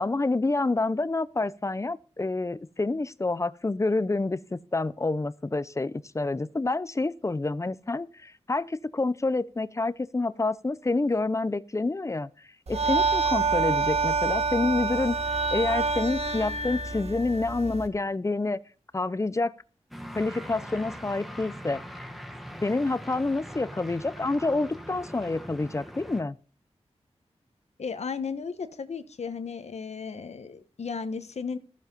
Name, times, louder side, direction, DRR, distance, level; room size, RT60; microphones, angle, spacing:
voice 1, 0.0-12.3 12.7-15.2 15.5-18.6 18.9-19.5 20.1-21.8 22.6-26.4, left 3 dB, 25° left, 0.6 m, -28 dB
sound 1, 12.7-17.9, right 4 dB, 70° right, 2.1 m, -27 dB
sound 2, 19.9-26.2, equal, ahead, 1.7 m, -42 dB
voice 2, 27.8-31.6, left 5 dB, 75° left, 1.2 m, -35 dB
14.5 x 7.4 x 5.3 m
wide cardioid pair, 80°, 11 cm